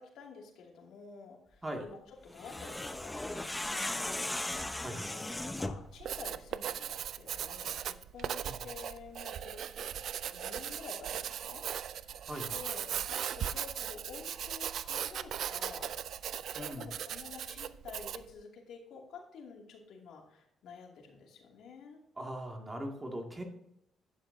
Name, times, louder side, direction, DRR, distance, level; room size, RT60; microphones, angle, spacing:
voice 1, 0.0-4.2 5.1-9.9 10.3-12.2 12.5-16.0 16.5-22.0, left 5 dB, 75° left, 1 dB, 2.5 m, -50 dB
sound 1, 2.3-5.9, left 1 dB, 10° left, 0.7 m, -37 dB
Writing, 5.9-18.3, right 9 dB, 70° right, 0.4 m, -38 dB
voice 2, 16.6-16.9 22.2-23.4, right 1 dB, 20° right, 2 dB, 2.2 m, -40 dB
11.5 x 9.7 x 2.7 m, 0.77 s
cardioid pair, 90°, 0 cm